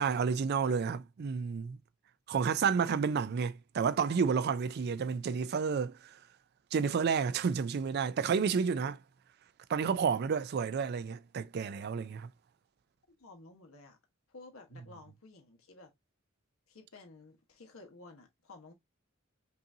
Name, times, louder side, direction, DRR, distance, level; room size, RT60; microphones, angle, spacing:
voice 1, 0.0-1.8 2.3-6.2 6.7-9.0 9.7-12.3, right 6 dB, 50° right, 0.3 m, -30 dB
voice 2, 13.1-14.0 14.3-15.9 16.7-18.7, left 3 dB, 80° left, 1.2 m, -53 dB
5.4 x 2.6 x 2.7 m
head